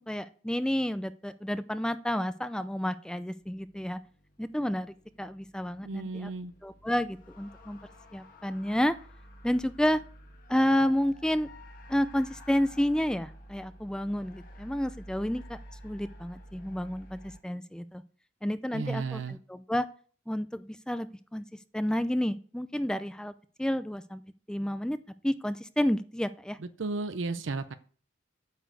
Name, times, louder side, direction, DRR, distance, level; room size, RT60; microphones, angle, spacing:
voice 1, 0.1-4.0 4.4-6.3 6.6-7.8 8.1-9.0 9.4-10.0 10.5-11.5 11.9-15.6 15.8-18.0 18.4-19.9 20.3-21.4 21.7-23.3 23.6-24.2 24.5-25.0 25.2-26.6, equal, 5° left, 13 dB, 0.4 m, -30 dB
sound 1, 3.4-17.4, equal, 45° left, 1.7 m, -51 dB
voice 2, 5.8-6.5 18.7-19.4 26.6-27.7, right 3 dB, 80° right, 11 dB, 0.7 m, -34 dB
9.4 x 6.2 x 8.0 m, 0.43 s
head